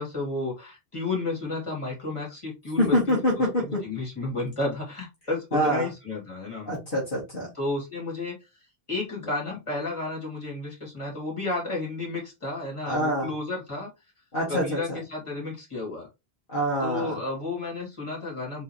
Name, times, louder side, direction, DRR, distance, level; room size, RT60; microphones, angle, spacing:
voice 1, 0.0-6.8 7.5-8.4 8.9-13.9 14.5-16.1 16.8-18.6, left 2 dB, 30° left, -3 dB, 2.6 m, -32 dB
voice 2, 2.8-3.8 5.5-5.9 6.7-7.5 12.9-13.3 14.3-15.0 16.5-17.2, equal, 55° left, -4 dB, 1.8 m, -25 dB
4.3 x 3.8 x 3.1 m, 0.24 s
omnidirectional pair, 1.0 m